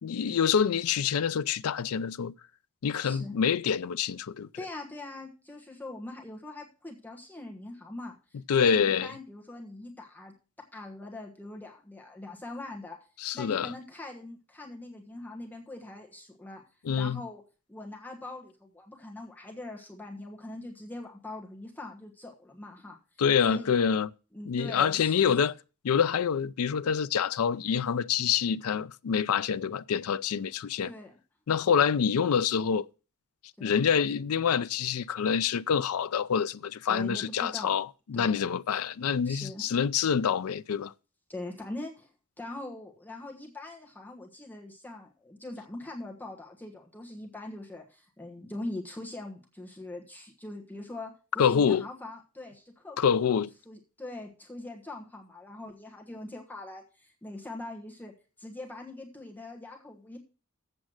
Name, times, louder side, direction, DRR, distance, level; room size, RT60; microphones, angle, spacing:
voice 1, 0.0-2.3 2.8-4.5 8.5-9.1 13.2-13.7 16.8-17.2 23.2-24.1 24.5-25.5 25.8-30.9 31.5-32.9 33.6-40.9 51.4-51.8 53.0-53.5, left 7 dB, 80° left, 0.4 m, -26 dB
voice 2, 3.0-3.3 4.6-13.1 13.3-16.6 17.0-17.4 17.7-23.0 23.4-23.8 24.3-25.4 30.8-31.2 33.6-33.8 36.9-37.8 38.1-38.5 39.2-39.7 41.3-42.1 42.4-53.4 53.6-58.1 58.4-60.2, left 2 dB, 10° left, 1.2 m, -42 dB
7.8 x 7.1 x 6.3 m
head